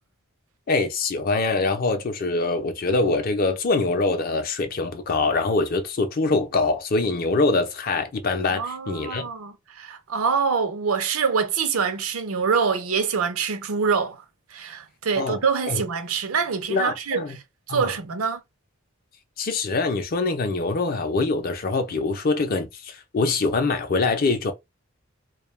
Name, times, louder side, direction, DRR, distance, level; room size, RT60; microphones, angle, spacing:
voice 1, 0.7-9.2 15.2-15.4 15.7-15.8 16.7-17.4 17.7-17.9 19.4-24.5, left 3 dB, 45° left, 0.5 m, -24 dB
voice 2, 8.5-14.2 14.5-17.4 17.7-18.4, right 5 dB, 80° right, 0.5 m, -25 dB
2.2 x 2.0 x 3.0 m
head